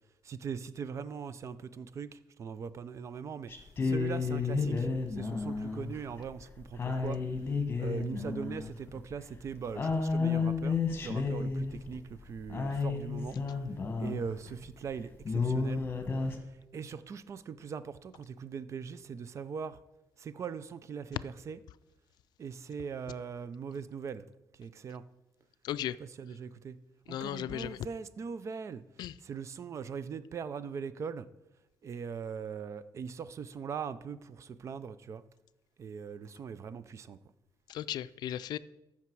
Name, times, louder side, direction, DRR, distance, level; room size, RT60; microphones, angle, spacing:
voice 1, 0.2-3.5 3.8-4.9 5.2-7.2 7.8-10.8 11.0-13.3 14.0-15.8 16.7-19.8 20.2-21.6 22.4-24.2 24.6-25.0 26.0-26.8 27.1-28.8 29.2-31.3 31.8-35.2 35.8-37.2, right 6 dB, 45° right, 15 dB, 0.5 m, -40 dB
sound 1, 3.5-14.5 14.9-15.0 15.2-16.4, left 4 dB, 30° left, 1.3 m, -32 dB
voice 2, 25.6-26.0 27.1-27.8 29.0-29.2 37.7-38.6, left 11 dB, 85° left, 16 dB, 0.4 m, -36 dB
14.5 x 5.9 x 4.7 m, 0.95 s
cardioid pair, 130°, 7 cm